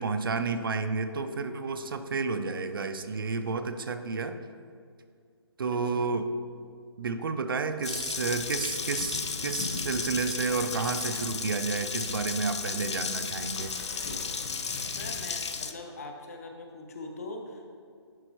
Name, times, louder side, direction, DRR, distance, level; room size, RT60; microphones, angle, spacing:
voice 1, 0.0-4.4 5.6-6.3 7.0-13.7, right 4 dB, 50° right, 8 dB, 0.4 m, -31 dB
voice 2, 5.7-6.1 15.0-17.7, left 2 dB, 35° left, 4 dB, 0.6 m, -42 dB
Water tap faucet, 7.8-15.7, left 5 dB, 85° left, 0.5 m, -34 dB
sound 1, 8.4-11.4 11.7-11.8 12.0-15.5, left 2 dB, 70° left, 1.6 m, -42 dB
10.5 x 4.4 x 3.0 m, 2.1 s
hypercardioid pair, 170°, 14 cm